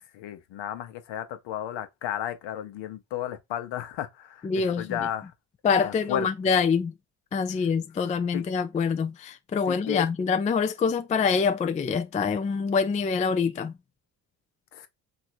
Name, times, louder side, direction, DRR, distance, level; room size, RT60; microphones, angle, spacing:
voice 1, 0.1-5.3 5.8-6.3 8.3-8.4 9.7-10.1 14.7-14.9, left 11 dB, 60° left, 0.9 m, -33 dB
voice 2, 4.4-5.0 5.6-6.9 7.3-13.7, left 5 dB, 15° left, 0.3 m, -25 dB
3.1 x 2.6 x 4.5 m
hypercardioid pair, 55°, 49 cm